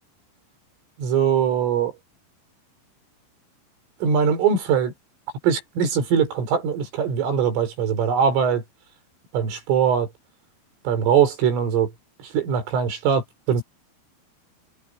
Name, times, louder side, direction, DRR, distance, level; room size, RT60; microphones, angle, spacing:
voice 1, 1.0-1.9 4.0-4.9 5.4-8.6 9.3-10.1 10.9-11.9 12.2-13.6, right 7 dB, 85° right, 7.4 m, -21 dB
omnidirectional pair, 5.6 m